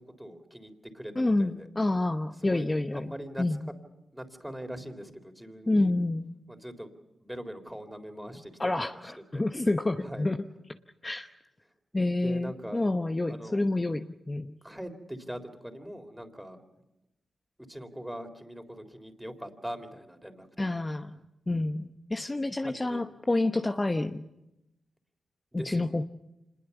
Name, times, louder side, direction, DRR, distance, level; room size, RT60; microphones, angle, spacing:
voice 1, 0.0-1.7 2.4-2.7 2.9-3.4 4.1-5.9 6.5-6.9 7.2-8.8 9.0-9.4 10.0-10.3 12.2-12.9 13.3-13.6 14.6-16.6 17.7-20.5 22.6-23.0 25.5-25.9, equal, 5° right, 7 dB, 3.7 m, -41 dB
voice 2, 1.2-3.7 5.7-6.3 8.6-10.4 11.0-11.3 11.9-14.5 20.6-21.1 21.5-24.2 25.5-26.0, left 2 dB, 25° left, 6 dB, 1.0 m, -28 dB
26.0 x 21.0 x 7.1 m, 0.93 s
supercardioid pair, 50°, 0 cm